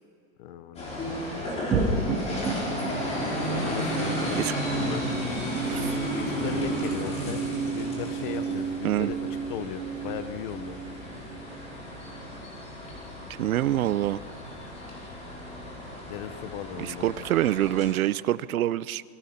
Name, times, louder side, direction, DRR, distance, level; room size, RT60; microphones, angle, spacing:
voice 1, 0.4-0.9 3.4-4.4 4.7-5.0 6.3-9.2 9.5-10.8 16.1-17.1, left 10 dB, 35° left, 12 dB, 1.1 m, -37 dB
sound 1, 0.8-17.9, equal, 15° left, 4.5 m, -33 dB
sound 2, 1.7-12.4, right 5 dB, 15° right, 7.7 m, -33 dB
voice 2, 4.2-4.5 5.7-5.9 8.8-9.1 13.4-14.2 16.8-19.0, right 13 dB, 75° right, 18 dB, 0.8 m, -26 dB
29.0 x 22.0 x 5.9 m, 2.4 s
supercardioid pair, 165°, 42 cm